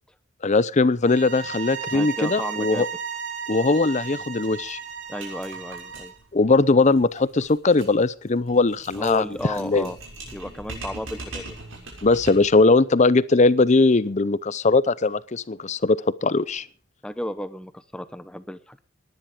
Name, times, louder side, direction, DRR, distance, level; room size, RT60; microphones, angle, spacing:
voice 1, 0.4-2.9 3.5-4.8 6.3-9.2 9.6-9.9 12.0-16.7, left 3 dB, 35° left, 18 dB, 0.6 m, -20 dB
sound 1, 1.0-6.2, right 7 dB, 65° right, 2.9 m, -34 dB
voice 2, 1.9-2.9 5.1-6.1 8.9-10.0 10.3-11.6 17.0-18.8, left 1 dB, 5° left, 13 dB, 0.9 m, -33 dB
sound 2, 3.7-3.8 4.1-4.2 4.4-12.6, right 2 dB, 80° right, 6.4 m, -42 dB
19.0 x 10.5 x 5.1 m, 0.40 s
head